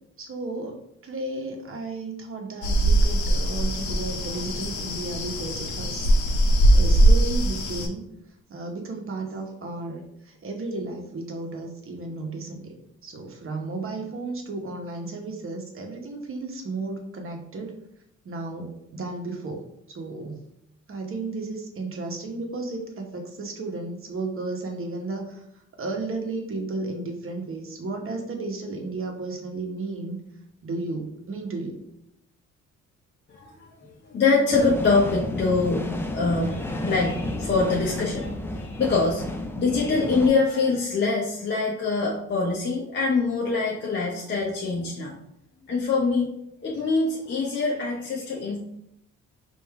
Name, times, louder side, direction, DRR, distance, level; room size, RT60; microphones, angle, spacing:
voice 1, 0.2-6.5 6.7-8.0 8.5-12.7 13.0-17.7 18.2-19.6 19.9-20.5 20.9-25.4 25.8-30.2 30.6-31.8, right 3 dB, 45° right, 2 dB, 1.0 m, -33 dB
sound 1, 2.6-7.9, right 1 dB, 70° left, 0.7 m, -21 dB
voice 2, 33.3-33.6 34.1-39.3 39.6-45.1 45.7-46.3 46.6-48.6, left 4 dB, 35° left, -5 dB, 0.8 m, -24 dB
sound 2, 34.5-40.3, left 1 dB, 10° left, 0.4 m, -31 dB
3.4 x 2.6 x 4.6 m, 0.77 s
cardioid pair, 90°, 30 cm